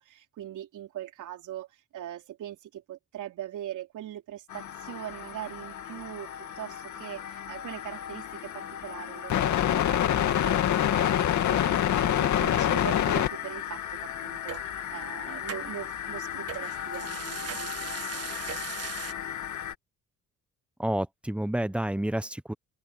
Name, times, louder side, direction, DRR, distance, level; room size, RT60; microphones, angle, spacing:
voice 1, 0.0-18.2, right 12 dB, 80° right, 3.8 m, -41 dB
sound 1, 4.5-19.7, left 10 dB, 75° left, 2.5 m, -29 dB
sound 2, 14.5-14.6 15.5-15.7 16.5-19.1, right 9 dB, 55° right, 1.6 m, -39 dB
voice 2, 20.8-22.5, right 1 dB, 5° right, 0.9 m, -29 dB
cardioid pair, 90°, 30 cm